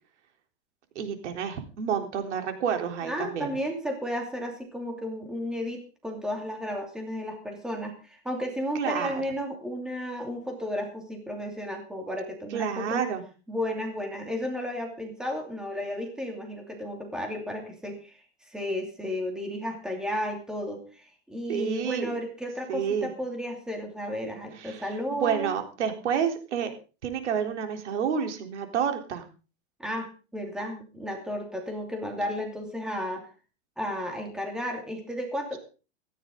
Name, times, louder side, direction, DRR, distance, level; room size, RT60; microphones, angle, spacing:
voice 1, 1.0-3.5 8.8-9.2 12.5-13.2 21.5-22.2 22.7-23.1 24.6-24.8 25.1-26.7 27.0-29.2, right 7 dB, 90° right, 5 dB, 3.8 m, -29 dB
voice 2, 3.0-13.0 13.5-18.2 18.5-25.6 29.8-33.3 33.8-35.6, equal, ahead, 2 dB, 2.7 m, -33 dB
17.0 x 13.5 x 3.9 m, 0.35 s
supercardioid pair, 165°, 34 cm